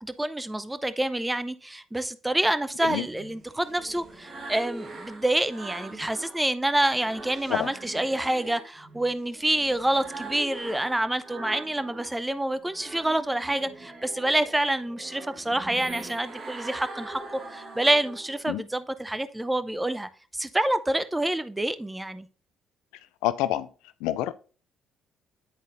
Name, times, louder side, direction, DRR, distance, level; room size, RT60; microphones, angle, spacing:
voice 1, 0.0-17.2 17.5-22.3, right 1 dB, 10° right, 0.6 m, -27 dB
sound 1, 3.0-6.4 6.8-12.2 12.6-18.4, right 2 dB, 50° right, 1.4 m, -42 dB
voice 2, 23.2-23.7 24.0-24.3, left 14 dB, 85° left, 0.3 m, -27 dB
10.0 x 3.9 x 2.5 m
supercardioid pair, 65°, 0 cm